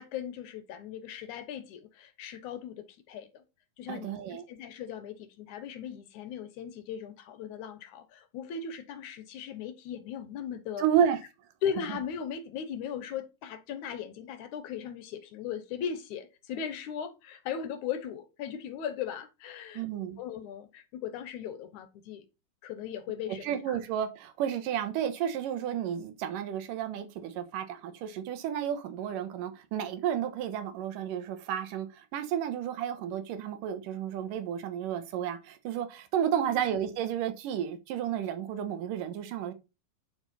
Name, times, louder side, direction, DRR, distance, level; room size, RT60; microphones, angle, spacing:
voice 1, 0.0-3.4 3.8-10.8 11.6-19.8 20.2-22.2 22.6-23.8 36.3-36.7, left 8 dB, 70° left, 2.2 m, -38 dB
voice 2, 3.9-4.5 10.8-11.2 11.9-12.0 19.7-20.2 23.4-39.5, right 9 dB, 75° right, 2.9 m, -32 dB
9.6 x 6.2 x 4.2 m
omnidirectional pair, 3.9 m